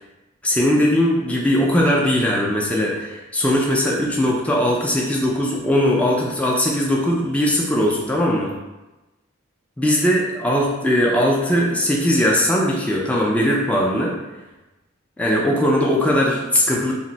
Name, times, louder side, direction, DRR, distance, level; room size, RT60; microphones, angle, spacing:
voice 1, 0.4-8.6 9.8-14.2 15.2-16.9, equal, 5° left, -3 dB, 0.3 m, -19 dB
2.5 x 2.0 x 3.9 m, 1.1 s
head